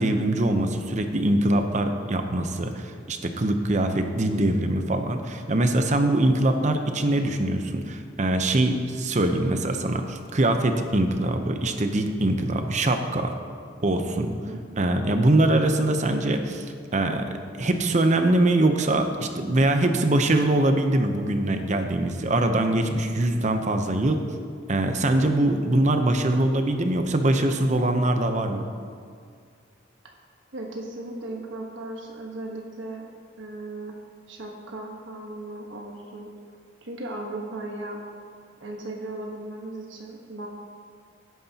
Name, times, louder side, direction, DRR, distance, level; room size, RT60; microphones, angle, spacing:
voice 1, 0.0-13.3 13.8-14.4 14.8-24.2 24.7-28.6, right 1 dB, 40° right, 6 dB, 0.7 m, -23 dB
voice 2, 14.5-14.8 30.5-33.1 33.4-34.0 34.3-36.3 36.8-38.0 38.6-40.5, right 2 dB, 75° right, 0 dB, 1.3 m, -36 dB
16.5 x 9.3 x 2.9 m, 2.2 s
head